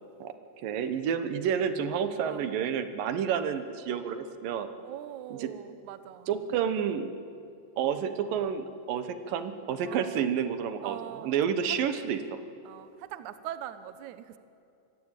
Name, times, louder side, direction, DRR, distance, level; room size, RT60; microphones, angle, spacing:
voice 1, 0.6-4.7 5.3-5.5 6.3-7.1 7.8-12.4, right 8 dB, 65° right, 10 dB, 2.6 m, -30 dB
voice 2, 4.8-6.3 9.8-10.3 10.8-11.3 12.6-14.4, right 11 dB, 85° right, 12 dB, 1.7 m, -42 dB
26.0 x 22.0 x 9.1 m, 2.6 s
omnidirectional pair, 5.0 m